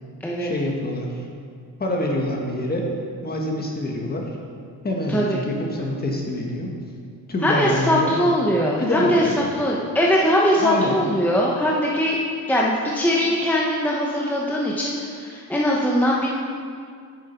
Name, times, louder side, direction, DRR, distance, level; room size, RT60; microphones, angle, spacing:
voice 1, 0.4-1.2 1.8-2.9 3.2-4.2 4.8-6.7 7.3-8.1 8.8-9.5 10.6-11.1, left 1 dB, 30° left, 0 dB, 1.5 m, -26 dB
voice 2, 7.4-12.2 12.5-16.3, equal, 5° left, -3 dB, 0.9 m, -21 dB
9.5 x 7.4 x 4.5 m, 2.2 s
cardioid pair, 130°, 33 cm